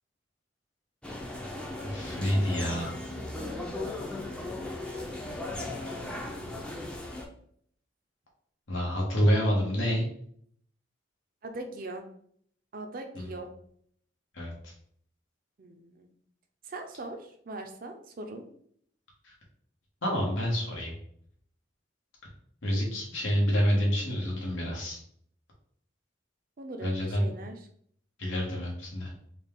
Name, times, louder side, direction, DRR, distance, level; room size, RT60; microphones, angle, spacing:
sound 1, 1.0-7.3, left 2 dB, 5° left, 0.5 m, -37 dB
voice 1, 1.8-2.9 8.7-10.0 13.1-13.3 14.3-14.7 19.2-19.3 20.0-21.0 22.6-25.0 26.8-27.3 28.2-29.1, equal, 85° left, -2 dB, 1.4 m, -28 dB
voice 2, 11.4-12.0 12.7-13.5 15.6-16.1 16.6-18.4 26.6-27.7, right 2 dB, 45° right, 5 dB, 0.5 m, -40 dB
4.1 x 2.3 x 3.5 m, 0.65 s
head